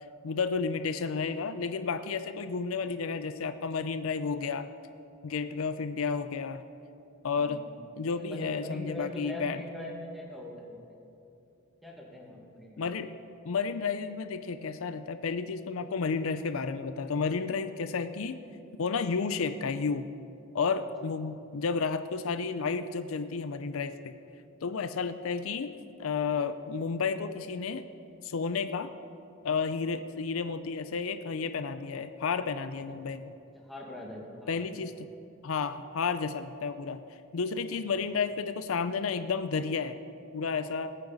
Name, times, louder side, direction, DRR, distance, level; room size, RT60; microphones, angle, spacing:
voice 1, 0.2-4.7 5.2-6.6 7.2-7.6 8.0-9.6 12.8-13.1 13.4-18.4 18.8-20.1 20.5-24.2 24.6-27.8 28.2-28.9 29.4-33.2 34.5-35.1 35.4-37.0 37.3-40.0 40.3-40.9, left 5 dB, 80° left, 10 dB, 0.5 m, -31 dB
voice 2, 8.2-10.9 11.8-13.0 32.7-33.0 33.5-35.0, left 1 dB, ahead, -2 dB, 1.9 m, -42 dB
19.0 x 8.9 x 4.0 m, 2.7 s
head